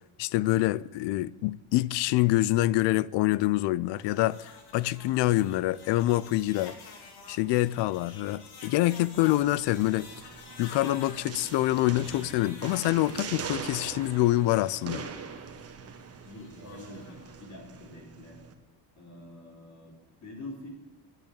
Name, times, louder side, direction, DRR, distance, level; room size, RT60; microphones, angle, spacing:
voice 1, 0.2-6.8 7.3-10.1 10.6-15.0, left 16 dB, 80° left, 0.6 m, -26 dB
sound 1, 3.9-17.3, left 4 dB, 65° left, 2.6 m, -50 dB
sound 2, 9.2-18.5, right 6 dB, 35° right, 1.4 m, -42 dB
voice 2, 16.2-18.4 19.0-19.9 20.2-20.7, left 2 dB, 45° left, 4.4 m, -45 dB
11.0 x 9.0 x 8.6 m
cardioid pair, 145°, 41 cm